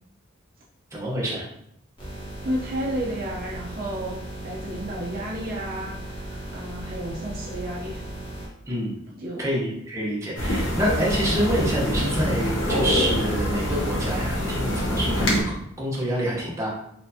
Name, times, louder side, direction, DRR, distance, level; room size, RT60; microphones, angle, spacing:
voice 1, 0.9-1.4 8.7-9.0 9.4-16.7, right 1 dB, 15° right, -5 dB, 0.8 m, -27 dB
sound 1, 2.0-8.5, right 1 dB, 25° left, 1.1 m, -37 dB
voice 2, 2.4-8.0 9.2-9.5, right 1 dB, 45° right, -4 dB, 0.6 m, -32 dB
sound 2, 10.4-15.4, equal, 60° left, 0.9 m, -25 dB
4.3 x 2.6 x 2.6 m, 0.75 s
head